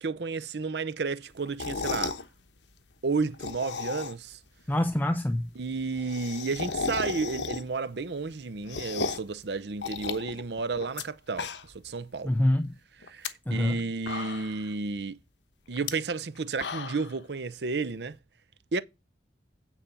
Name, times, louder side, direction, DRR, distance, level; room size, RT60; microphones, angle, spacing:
voice 1, 0.0-2.1 3.0-4.4 5.6-12.3 13.1-15.2 15.7-18.2 18.7-18.8, right 4 dB, 70° right, 0.7 m, -32 dB
sound 1, 1.5-2.2 3.2-4.3 4.7-4.8 5.0-5.1 5.3-5.4 5.7-7.9 8.2-9.3 9.8-11.0 11.3-11.9 12.2-12.3 13.0-13.3 13.8-13.9 14.1-14.7 15.7-15.9 16.3-17.1, left 5 dB, 90° left, 1.1 m, -34 dB
voice 2, 4.7-5.5 12.2-12.8 13.5-13.8, left 1 dB, 10° left, 0.5 m, -25 dB
9.0 x 4.4 x 6.6 m
head